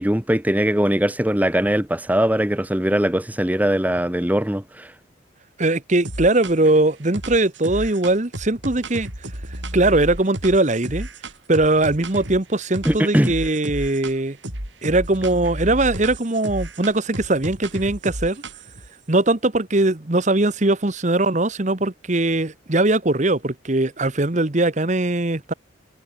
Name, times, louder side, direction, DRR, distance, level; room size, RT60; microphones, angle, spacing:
voice 1, 0.0-4.9 12.8-13.3, right 1 dB, 10° right, 0.9 m, -20 dB
voice 2, 5.6-9.1 9.7-11.1 11.5-14.4 14.8-18.4 19.1-25.5, right 2 dB, 35° right, 1.1 m, -20 dB
sound 1, 6.0-6.8 7.1-12.4 12.7-14.2 14.4-18.9, right 1 dB, 70° right, 7.6 m, -33 dB
head